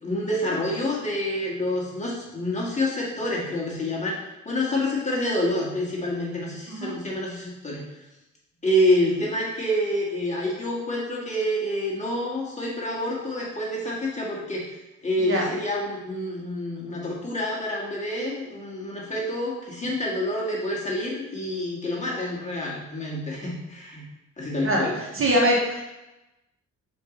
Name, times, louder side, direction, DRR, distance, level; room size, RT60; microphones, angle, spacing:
voice 1, 0.0-4.2 4.5-7.8 8.6-14.6 15.0-24.0 24.4-25.0, left 1 dB, 25° left, -5 dB, 2.0 m, -27 dB
voice 2, 25.1-25.8, equal, 45° right, -2 dB, 1.5 m, -23 dB
5.2 x 4.7 x 3.9 m, 0.99 s
cardioid pair, 90°, 30 cm